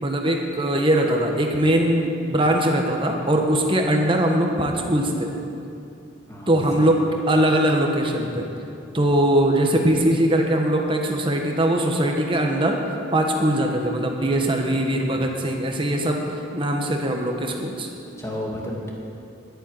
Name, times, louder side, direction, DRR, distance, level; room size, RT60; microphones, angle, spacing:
voice 1, 0.0-5.3 6.5-8.5 8.9-12.8 13.1-16.2 16.5-17.9, right 1 dB, 25° right, 2 dB, 1.3 m, -21 dB
voice 2, 6.3-7.0 15.1-15.3 18.0-18.9, left 1 dB, 15° left, -3 dB, 2.3 m, -33 dB
10.5 x 9.1 x 9.5 m, 2.7 s
head